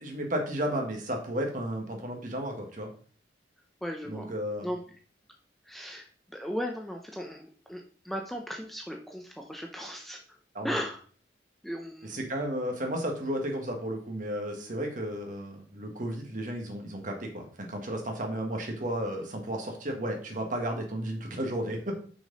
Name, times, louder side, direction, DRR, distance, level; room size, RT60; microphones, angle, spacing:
voice 1, 0.0-2.9 4.0-4.7 10.5-10.8 12.0-22.0, right 1 dB, 45° right, 2 dB, 1.7 m, -33 dB
voice 2, 3.8-4.3 4.6-4.8 5.7-6.1 6.3-10.2 10.6-11.0 11.6-12.2, equal, ahead, 1 dB, 0.6 m, -36 dB
6.1 x 6.0 x 4.0 m, 0.42 s
head